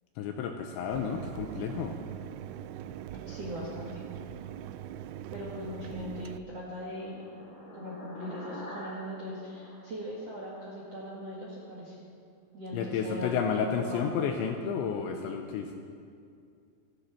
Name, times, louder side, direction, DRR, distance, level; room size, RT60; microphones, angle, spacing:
voice 1, 0.2-2.0 12.7-15.7, left 7 dB, 80° left, 4 dB, 2.7 m, -31 dB
Mechanisms, 0.9-6.4, right 11 dB, 85° right, 2.8 m, -41 dB
voice 2, 3.2-4.0 5.3-7.3 7.7-12.0 12.5-14.0, equal, 55° right, -5 dB, 1.8 m, -40 dB
sound 1, 6.2-10.8, equal, 20° left, 2.4 m, -47 dB
15.0 x 15.0 x 5.9 m, 2.4 s
omnidirectional pair, 6.0 m